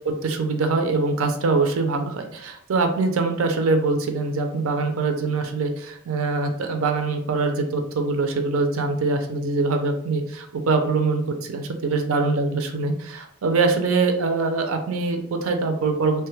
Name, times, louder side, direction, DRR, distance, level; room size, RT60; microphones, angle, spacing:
voice 1, 0.1-16.3, right 3 dB, 75° right, 6 dB, 0.5 m, -23 dB
3.0 x 2.2 x 3.2 m, 0.71 s
head